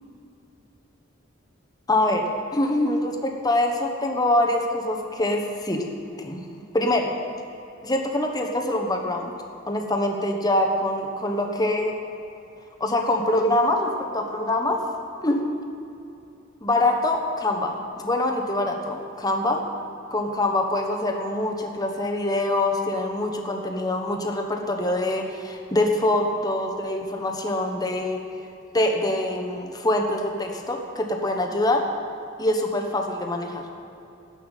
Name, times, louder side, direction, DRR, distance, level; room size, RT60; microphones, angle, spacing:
voice 1, 1.9-5.8 6.2-6.4 6.7-7.2 7.8-9.3 9.7-12.0 12.8-14.9 15.2-15.4 16.6-19.6 20.1-28.2 28.7-31.9 32.4-33.7, left 1 dB, 20° left, 2 dB, 1.2 m, -24 dB
13.5 x 6.0 x 9.1 m, 2.7 s
head